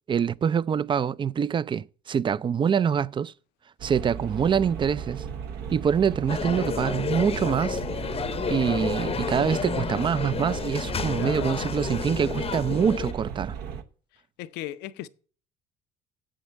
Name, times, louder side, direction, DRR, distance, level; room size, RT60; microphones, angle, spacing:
voice 1, 0.1-3.3 3.8-5.2 5.7-7.8 8.5-13.6, right 7 dB, 30° right, 0.4 m, -25 dB
sound 1, 3.8-13.8, right 7 dB, 65° right, 0.9 m, -36 dB
sound 2, 6.3-13.1, left 6 dB, 35° left, 0.7 m, -31 dB
voice 2, 11.2-11.7 14.1-15.1, left 14 dB, 70° left, 0.5 m, -38 dB
7.9 x 6.4 x 8.1 m
hypercardioid pair, 65°, 18 cm